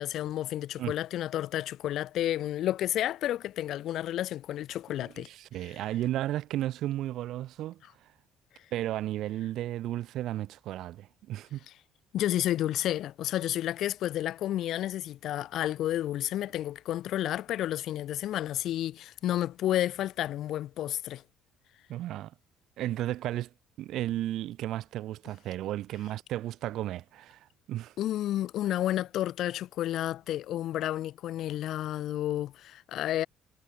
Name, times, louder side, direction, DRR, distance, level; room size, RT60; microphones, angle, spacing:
voice 1, 0.0-5.3 5.6-5.8 12.1-21.2 28.0-33.3, left 13 dB, 65° left, 0.4 m, -31 dB
voice 2, 5.0-7.8 8.7-11.6 21.9-22.3 22.8-23.5 23.8-27.9, right 14 dB, 65° right, 1.1 m, -34 dB
cardioid pair, 125°, 0 cm